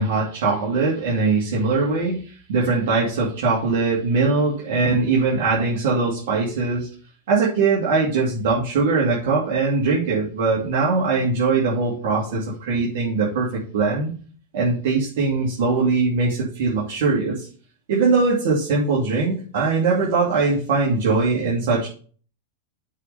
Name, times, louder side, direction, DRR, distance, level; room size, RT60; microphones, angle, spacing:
voice 1, 0.0-2.2 2.5-6.9 7.3-14.1 14.5-17.5 17.9-21.9, right 4 dB, 70° right, -5 dB, 2.7 m, -21 dB
7.2 x 4.3 x 6.8 m, 0.43 s
hypercardioid pair, 125°, 0 cm